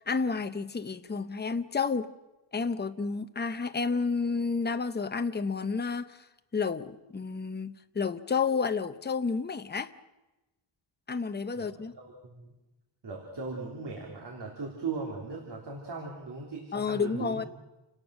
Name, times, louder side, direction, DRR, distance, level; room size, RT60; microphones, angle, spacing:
voice 1, 0.1-2.1 2.5-6.2 6.5-9.9 11.1-11.9 16.7-17.4, left 5 dB, 20° left, 0.7 m, -30 dB
voice 2, 11.6-12.5 13.0-17.5, right 4 dB, 55° right, 3.4 m, -38 dB
29.0 x 18.0 x 6.4 m
wide cardioid pair, 175°, 48 cm